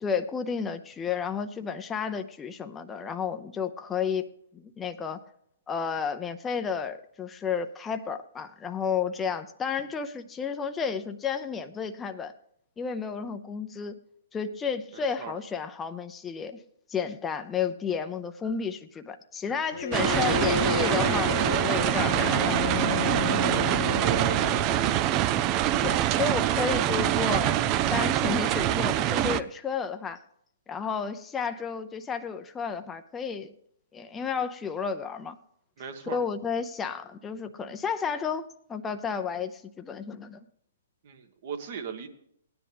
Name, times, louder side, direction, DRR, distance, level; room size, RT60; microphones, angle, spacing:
voice 1, 0.0-5.2 5.7-12.3 12.8-14.0 14.3-16.6 16.9-22.6 25.8-30.2 30.7-33.5 33.9-35.4 36.0-40.4, left 6 dB, 15° left, 7 dB, 0.6 m, -32 dB
voice 2, 14.9-15.3 20.1-20.5 23.5-23.7 24.0-24.9 35.8-36.2 41.0-42.1, right 7 dB, 50° right, 6 dB, 1.6 m, -38 dB
Bowed string instrument, 19.7-25.2, left 7 dB, 70° left, 0.6 m, -32 dB
sound 1, 19.9-29.4, right 12 dB, 30° right, 0.5 m, -25 dB
18.0 x 10.0 x 3.5 m, 0.70 s
hypercardioid pair, 130°, 0 cm